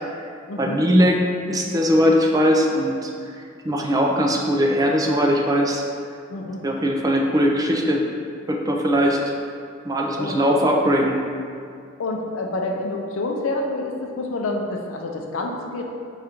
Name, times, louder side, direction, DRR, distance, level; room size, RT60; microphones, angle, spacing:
voice 1, 0.6-1.2 1.5-3.4 3.6-5.8 6.6-8.1 8.5-9.2 9.9-11.2, equal, 20° right, 0 dB, 0.4 m, -20 dB
voice 2, 6.3-6.6 10.2-10.4 12.0-15.8, left 2 dB, 85° left, 2 dB, 0.5 m, -28 dB
4.9 x 2.4 x 4.3 m, 2.3 s
head